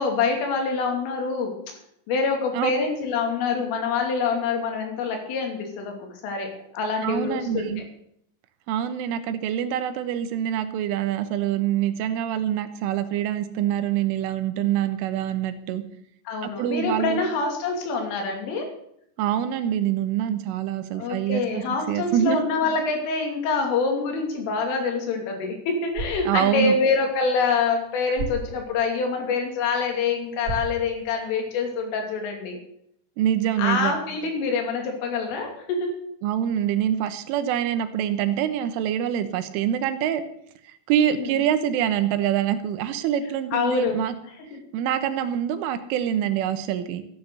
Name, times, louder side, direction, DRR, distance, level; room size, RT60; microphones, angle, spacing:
voice 1, 0.0-1.5 2.1-6.0 6.2-7.7 16.3-18.7 20.9-32.6 33.6-36.0 41.0-41.3 43.5-44.0 44.5-44.6, left 4 dB, 85° left, 3 dB, 5.3 m, -26 dB
voice 2, 7.0-7.8 8.7-15.8 16.4-17.2 19.2-22.4 26.3-26.8 33.2-34.0 36.2-40.2 40.7-44.2 44.7-47.0, right 10 dB, 85° right, 11 dB, 3.6 m, -25 dB
sound 1, 25.8-31.8, right 2 dB, 40° right, 1.8 m, -38 dB
14.5 x 10.5 x 6.8 m, 0.72 s
omnidirectional pair, 5.6 m